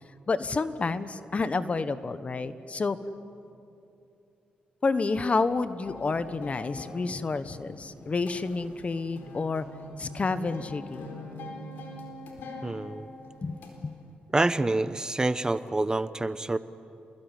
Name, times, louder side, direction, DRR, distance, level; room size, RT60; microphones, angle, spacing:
voice 1, 0.3-3.0 4.8-9.7 10.0-11.1 13.4-14.0, left 4 dB, 40° left, 13 dB, 1.3 m, -29 dB
sound 1, 5.8-13.9, left 2 dB, 80° left, 4.3 m, -43 dB
voice 2, 12.6-13.1 14.3-16.6, right 2 dB, 20° right, 14 dB, 1.0 m, -27 dB
28.5 x 21.0 x 9.4 m, 2.7 s
cardioid pair, 65°, 3 cm